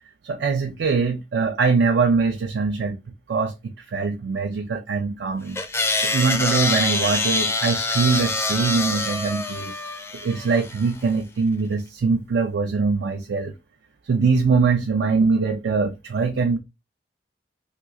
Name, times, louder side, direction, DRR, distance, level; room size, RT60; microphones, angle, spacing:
voice 1, 0.2-3.0 3.3-5.6 6.0-9.8 10.2-13.5 14.0-16.6, right 4 dB, 75° right, 0.4 m, -22 dB
sound 1, 5.6-10.9, left 2 dB, 15° left, 0.4 m, -25 dB
2.9 x 2.3 x 3.4 m
head